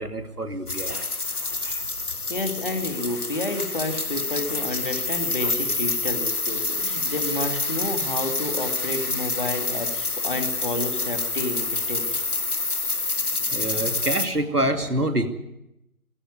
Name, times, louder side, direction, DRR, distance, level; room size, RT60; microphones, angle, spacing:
voice 1, 0.0-1.8 5.4-5.5 12.8-15.3, right 1 dB, 90° right, 7 dB, 2.6 m, -28 dB
sound 1, 0.7-14.3, left 3 dB, 75° left, 1.7 m, -27 dB
voice 2, 2.3-12.2, left 2 dB, 35° left, 5 dB, 2.5 m, -30 dB
19.5 x 15.5 x 9.7 m, 0.87 s
figure-of-eight pair, 170°, 45 cm